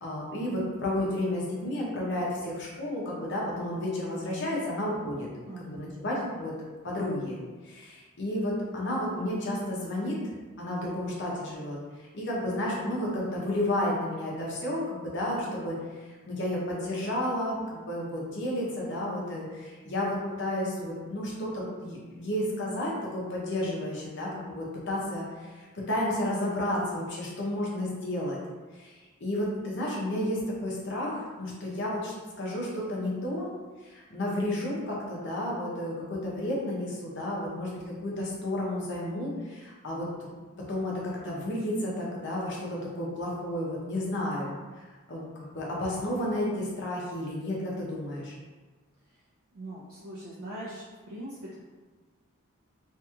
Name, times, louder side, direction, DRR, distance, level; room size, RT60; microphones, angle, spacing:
voice 1, 0.0-5.3 5.6-6.5 6.8-7.4 7.6-10.2 10.6-15.8 16.3-28.4 28.7-28.9 29.2-33.5 33.8-40.3 40.7-44.8 45.1-48.3, left 1 dB, 55° left, -4 dB, 0.7 m, -32 dB
voice 2, 5.5-6.0 19.8-20.2 49.5-51.6, right 1 dB, 75° right, -7 dB, 0.5 m, -42 dB
2.8 x 2.6 x 2.3 m, 1.4 s
head